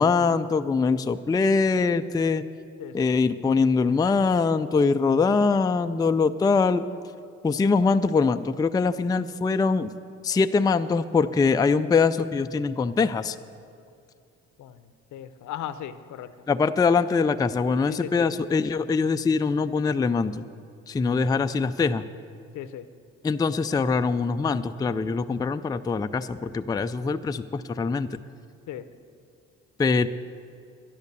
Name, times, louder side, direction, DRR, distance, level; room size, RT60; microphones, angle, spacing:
voice 1, 0.0-2.4 2.9-6.9 7.4-9.9 10.2-13.3 16.5-20.4 20.9-22.0 23.2-28.1 29.8-30.1, left 4 dB, 15° left, 9 dB, 0.3 m, -23 dB
voice 2, 2.8-3.1 14.6-16.3 17.9-18.3 22.5-22.9 28.7-28.9, left 10 dB, 75° left, 12 dB, 0.7 m, -37 dB
11.5 x 10.5 x 6.8 m, 2.4 s
cardioid pair, 90°, 30 cm